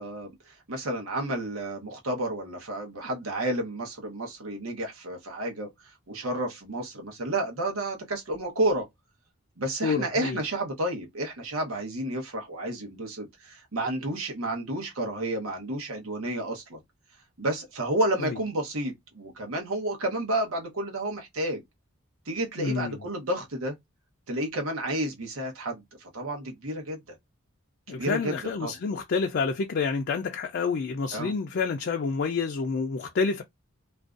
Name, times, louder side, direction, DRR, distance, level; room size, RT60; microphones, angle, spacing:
voice 1, 0.0-5.7 6.1-8.9 9.6-16.8 17.4-21.6 22.3-23.8 24.3-27.2 27.9-28.8 31.1-31.3, right 1 dB, 80° right, 0.9 m, -31 dB
voice 2, 9.8-10.4 22.6-23.0 27.9-33.4, left 5 dB, 50° left, 0.4 m, -28 dB
2.5 x 2.2 x 2.3 m
head